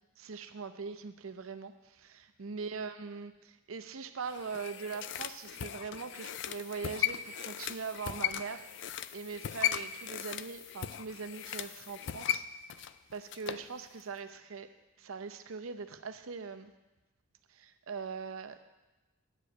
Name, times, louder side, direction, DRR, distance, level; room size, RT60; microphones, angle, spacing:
voice 1, 0.2-12.4 13.1-14.7 15.0-16.7 17.5-18.6, right 5 dB, 85° right, 9 dB, 0.7 m, -41 dB
sound 1, 4.3-13.7 14.0-14.1, left 10 dB, 60° left, 0.3 m, -37 dB
9.9 x 5.0 x 7.8 m, 1.1 s
head